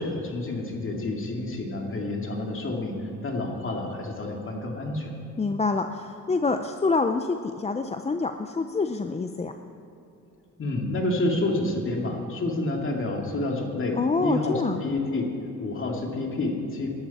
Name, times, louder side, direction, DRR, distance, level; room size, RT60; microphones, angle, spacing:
voice 1, 0.0-5.1 10.6-15.3 15.6-16.9, left 2 dB, 45° left, 1 dB, 2.5 m, -29 dB
voice 2, 5.4-9.5 14.0-14.8, left 4 dB, 20° left, 7 dB, 0.6 m, -26 dB
19.0 x 11.5 x 4.3 m, 2.6 s
cardioid pair, 90°, 30 cm